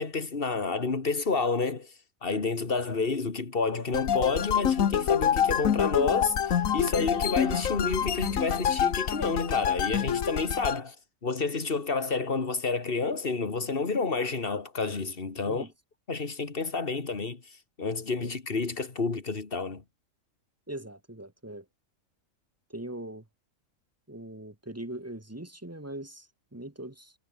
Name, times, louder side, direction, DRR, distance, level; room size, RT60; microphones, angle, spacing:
voice 1, 0.0-1.9 2.2-11.0 11.2-15.7 16.1-17.4 17.8-19.8, left 4 dB, 45° left, 2.3 m, -29 dB
sound 1, 3.9-10.8, left 9 dB, 85° left, 1.5 m, -27 dB
sound 2, 7.1-8.7, right 2 dB, 55° right, 5.0 m, -47 dB
voice 2, 20.7-21.6 22.7-23.2 24.1-27.1, right 1 dB, 10° right, 1.6 m, -41 dB
omnidirectional pair, 1.4 m